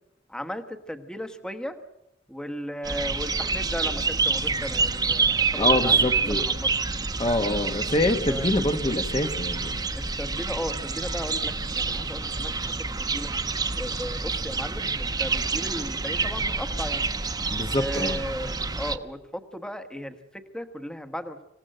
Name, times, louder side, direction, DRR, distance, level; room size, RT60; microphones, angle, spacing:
voice 1, 0.3-1.8 2.3-6.7 7.5-7.6 8.3-8.5 9.9-12.7 13.0-13.4 13.7-17.1 17.8-21.4, equal, 5° left, 8 dB, 1.2 m, -36 dB
sound 1, 2.8-19.0, right 4 dB, 20° right, 0.9 m, -27 dB
voice 2, 5.5-6.4 7.2-9.8 17.5-18.2, left 1 dB, 30° left, 6 dB, 1.2 m, -25 dB
26.5 x 16.5 x 7.8 m, 0.85 s
head